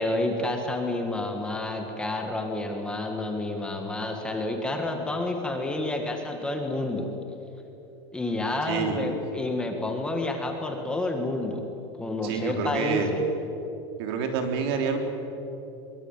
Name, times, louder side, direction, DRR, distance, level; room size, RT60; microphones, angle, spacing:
voice 1, 0.0-7.1 8.1-11.6 12.0-13.2, left 2 dB, 5° left, 3 dB, 1.7 m, -29 dB
voice 2, 8.7-9.1 12.2-13.1 14.0-15.0, right 5 dB, 60° right, 4 dB, 3.9 m, -28 dB
23.5 x 23.0 x 8.9 m, 3.0 s
supercardioid pair, 175°, 14 cm